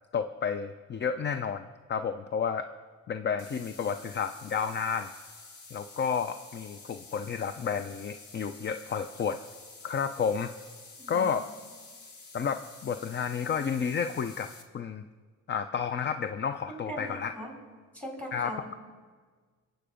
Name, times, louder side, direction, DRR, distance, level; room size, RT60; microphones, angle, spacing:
voice 1, 0.1-2.7 3.1-5.1 5.7-9.4 9.8-10.5 11.1-11.5 12.3-15.0 15.5-17.5 18.3-18.6, left 6 dB, 35° left, 10 dB, 0.6 m, -31 dB
sound 1, 3.4-14.6, left 3 dB, 75° left, 1.7 m, -50 dB
voice 2, 11.0-11.3 16.7-17.5 17.9-18.8, equal, 5° left, -1 dB, 5.0 m, -40 dB
22.0 x 8.0 x 5.1 m, 1.5 s
cardioid pair, 90°, 30 cm